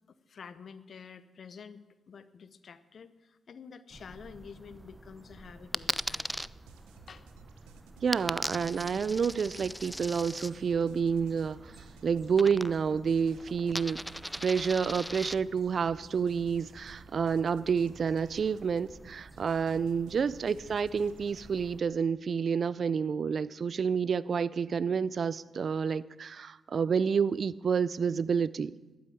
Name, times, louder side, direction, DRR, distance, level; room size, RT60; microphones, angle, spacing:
voice 1, 0.1-6.3 7.1-7.3 19.7-20.1, left 6 dB, 60° left, 14 dB, 0.8 m, -49 dB
sound 1, 3.9-21.8, right 2 dB, 25° right, 1.1 m, -53 dB
Coin (dropping), 5.7-6.5 8.1-10.5 12.4-13.0 13.3-15.4, equal, ahead, 0.4 m, -37 dB
sound 2, 5.8-21.4, right 7 dB, 85° right, 0.9 m, -58 dB
voice 2, 8.0-11.7 12.0-14.0 14.4-28.7, right 6 dB, 55° right, 19 dB, 0.4 m, -29 dB
12.0 x 8.7 x 8.7 m, 1.2 s
hypercardioid pair, 40°, 0 cm